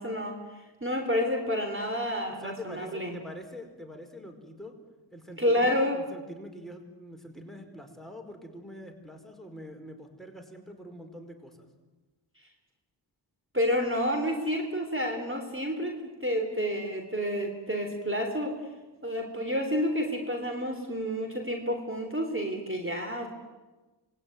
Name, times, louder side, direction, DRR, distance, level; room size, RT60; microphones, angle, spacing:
voice 1, 0.0-3.1 5.4-6.0 13.5-18.6 19.0-23.3, equal, 25° right, 3 dB, 3.8 m, -29 dB
voice 2, 2.4-4.7 5.1-11.7, equal, ahead, 5 dB, 4.9 m, -44 dB
27.0 x 20.5 x 9.4 m, 1.2 s
wide cardioid pair, 50°, 45 cm